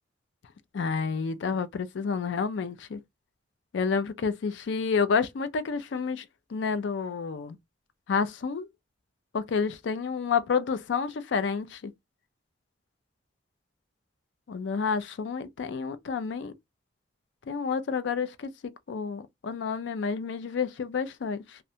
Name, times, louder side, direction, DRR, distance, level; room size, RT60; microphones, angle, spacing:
voice 1, 0.7-3.0 3.7-6.2 6.5-7.6 8.1-8.7 9.3-11.9 14.5-16.5 17.5-21.6, left 5 dB, 70° left, 0.4 m, -29 dB
2.5 x 2.1 x 2.7 m
head